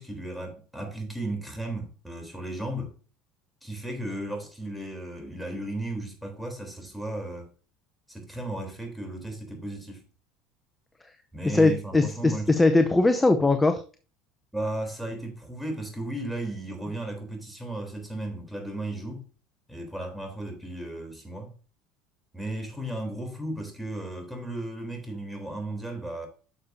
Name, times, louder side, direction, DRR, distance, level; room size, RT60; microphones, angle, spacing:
voice 1, 0.0-2.9 3.6-7.5 8.1-10.1 11.3-12.5 14.5-19.3 19.7-21.5 22.3-26.3, right 1 dB, ahead, 3.6 m, -35 dB
voice 2, 11.4-13.8, left 2 dB, 15° left, 0.7 m, -21 dB
9.7 x 6.7 x 2.7 m
hypercardioid pair, 85°, 0 cm